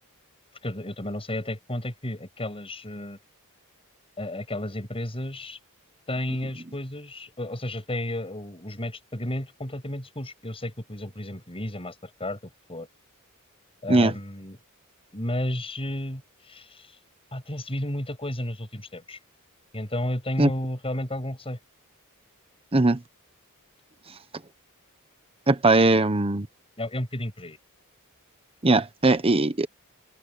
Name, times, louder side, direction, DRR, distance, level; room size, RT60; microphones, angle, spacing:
voice 1, 0.6-3.2 4.2-5.6 6.1-12.9 13.8-14.6 15.1-17.0 17.3-19.2 19.7-21.6 25.8-26.1 26.8-27.6, left 1 dB, 25° left, 7.2 m, -32 dB
voice 2, 25.5-26.5 28.6-29.7, right 2 dB, 25° right, 1.1 m, -20 dB
open air
head